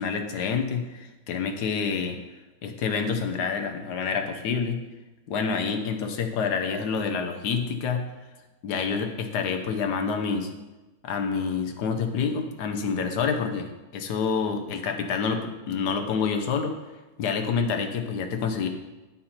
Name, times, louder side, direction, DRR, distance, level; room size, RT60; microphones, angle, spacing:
voice 1, 0.0-2.2 2.6-4.8 5.3-8.0 8.6-10.5 11.0-16.7 17.2-18.7, left 5 dB, 65° left, 5 dB, 1.2 m, -27 dB
9.2 x 5.8 x 4.3 m, 1.1 s
omnidirectional pair, 2.2 m